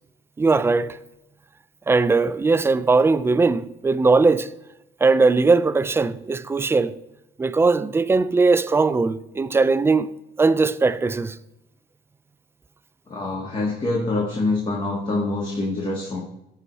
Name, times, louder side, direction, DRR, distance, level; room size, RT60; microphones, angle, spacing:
voice 1, 0.4-1.0 1.9-4.5 5.0-7.0 7.4-10.1 10.4-11.4, right 3 dB, 15° right, 0.4 m, -19 dB
voice 2, 13.1-16.2, left 2 dB, 30° left, 1.8 m, -25 dB
14.0 x 4.9 x 4.1 m
cardioid pair, 110°, 17 cm